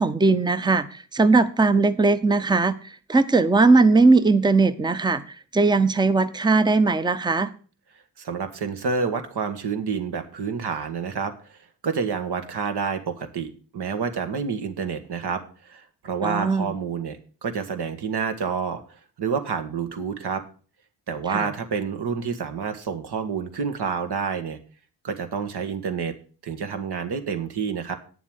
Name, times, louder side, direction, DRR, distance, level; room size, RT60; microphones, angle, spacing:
voice 1, 0.0-5.2 5.5-7.5 16.2-16.7 21.3-21.5, right 3 dB, 10° right, 13 dB, 0.7 m, -19 dB
voice 2, 8.2-11.6 11.8-18.8 19.2-20.4 21.1-24.6 25.0-26.1 26.4-28.0, right 6 dB, 65° right, 7 dB, 1.7 m, -28 dB
9.2 x 7.1 x 6.4 m, 0.39 s
cardioid pair, 65°, 42 cm